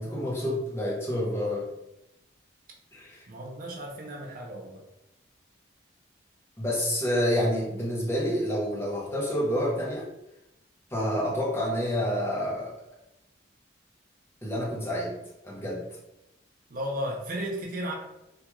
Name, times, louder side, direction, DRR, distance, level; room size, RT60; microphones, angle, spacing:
voice 1, 0.0-1.7 2.9-3.2 6.6-10.1 10.9-12.7 14.4-15.2 15.4-15.8, equal, 15° left, -5 dB, 0.6 m, -28 dB
voice 2, 3.3-4.8 16.7-17.9, equal, 45° right, -1 dB, 0.4 m, -34 dB
2.3 x 2.3 x 2.9 m, 0.88 s
head